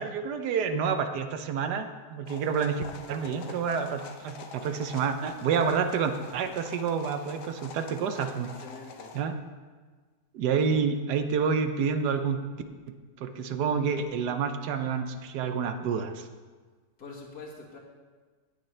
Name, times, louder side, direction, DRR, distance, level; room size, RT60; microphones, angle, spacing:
voice 1, 0.0-8.5 9.1-9.3 10.3-12.4 13.2-16.3, right 6 dB, 85° right, 8 dB, 1.3 m, -28 dB
sound 1, 2.3-9.2, left 4 dB, 90° left, 1.4 m, -46 dB
voice 2, 8.4-9.2 17.0-17.8, left 3 dB, 70° left, -2 dB, 2.2 m, -45 dB
17.5 x 6.7 x 3.3 m, 1.4 s
omnidirectional pair, 1.7 m